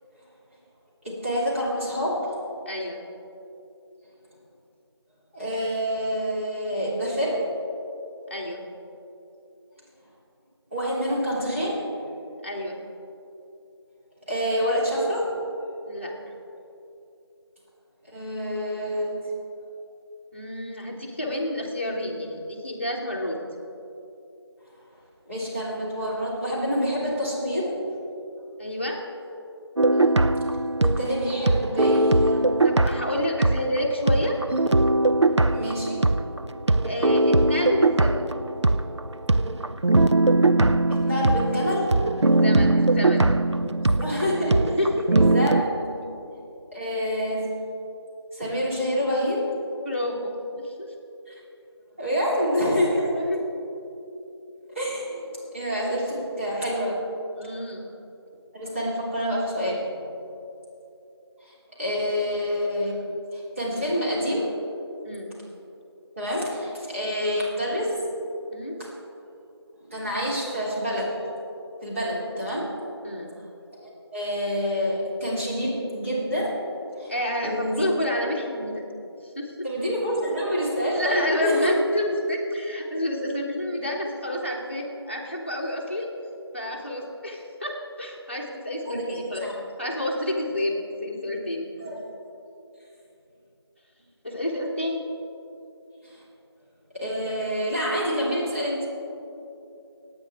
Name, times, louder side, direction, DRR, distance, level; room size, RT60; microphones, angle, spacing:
voice 1, 1.0-2.4 5.3-7.6 10.7-12.1 14.3-15.3 18.1-19.3 25.3-27.8 29.9-30.0 30.8-32.5 35.2-36.4 40.9-42.1 44.0-44.8 45.1-46.0 46.7-47.7 48.3-49.6 51.3-51.4 52.0-53.2 54.7-55.3 55.5-57.1 58.5-59.9 61.4-64.6 66.2-68.1 69.8-71.3 71.8-72.8 73.7-76.7 77.0-77.1 77.4-77.8 79.6-81.7 88.9-89.5 91.8-92.0 96.0-96.2 96.9-98.9, equal, 30° right, -7 dB, 3.0 m, -27 dB
voice 2, 2.7-3.0 8.3-8.6 12.4-12.8 15.9-16.1 20.3-23.4 28.6-29.0 32.6-34.4 36.7-38.3 42.2-43.3 44.8-45.2 49.8-50.9 53.1-53.4 57.4-57.9 65.0-65.3 68.5-68.8 73.0-73.3 77.1-78.8 79.3-79.5 80.9-86.1 86.5-89.4 89.8-91.7 94.2-95.0, left 1 dB, 25° left, -1 dB, 1.2 m, -29 dB
sound 1, 29.8-33.8 34.1-45.6, right 2 dB, 85° right, 0.6 m, -21 dB
24.5 x 9.2 x 3.5 m, 2.8 s
figure-of-eight pair, 175°, 14 cm